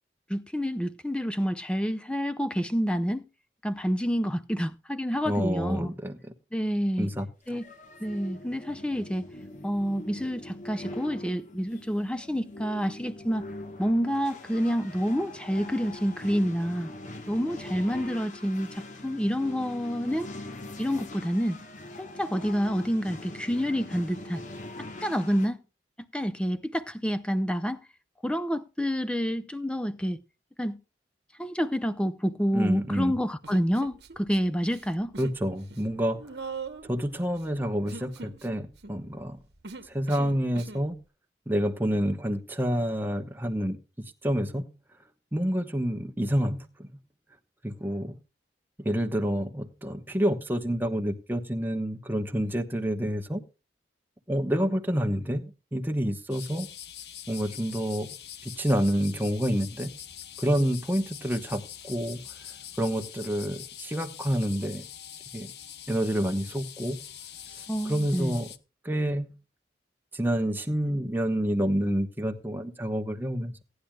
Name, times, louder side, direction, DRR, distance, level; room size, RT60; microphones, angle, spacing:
voice 1, 0.3-3.3 3.6-5.9 6.5-7.1 7.5-7.7 8.0-9.3 9.6-13.5 13.8-16.9 17.3-20.3 20.8-21.6 22.0-24.4 25.0-25.6 26.1-27.8 28.2-30.2 30.6-30.8 31.4-35.1 67.7-68.4, equal, 5° left, 0.6 m, -28 dB
voice 2, 5.2-6.2 7.0-7.6 32.5-33.1 35.2-36.2 36.9-39.4 39.9-40.9 41.5-43.8 44.2-44.7 45.3-46.9 47.6-48.2 48.8-53.4 54.3-55.4 55.7-56.7 57.3-58.1 58.4-59.9 60.4-62.2 62.8-64.8 65.3-65.5 65.9-67.0 67.9-68.5 68.8-69.4 70.1-73.6, equal, 10° right, 1.1 m, -28 dB
sound 1, 7.5-25.5, left 2 dB, 45° left, 1.3 m, -43 dB
Human voice, 33.4-34.4 34.7-35.4 35.7-40.9, right 4 dB, 70° right, 1.1 m, -42 dB
sound 2, 56.3-68.6, left 10 dB, 65° left, 0.8 m, -44 dB
17.5 x 10.0 x 2.3 m
head